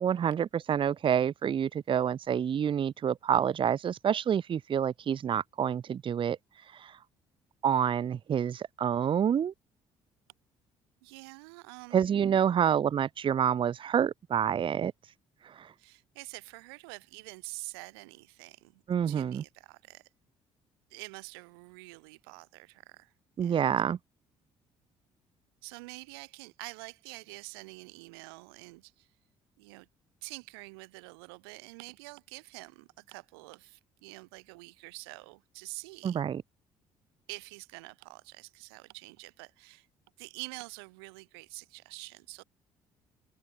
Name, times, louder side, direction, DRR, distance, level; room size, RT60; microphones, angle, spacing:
voice 1, 0.0-6.4 6.7-7.0 7.6-9.5 11.9-14.9 15.4-15.7 18.9-19.4 23.4-24.0 36.0-36.4, right 8 dB, 40° right, 0.6 m, -28 dB
voice 2, 11.0-12.1 15.8-20.1 20.9-23.1 23.4-23.7 25.6-29.1 29.6-29.9 30.2-36.2 37.3-39.9 40.2-42.4, right 28 dB, 85° right, 2.7 m, -47 dB
hypercardioid pair, 60°, 13 cm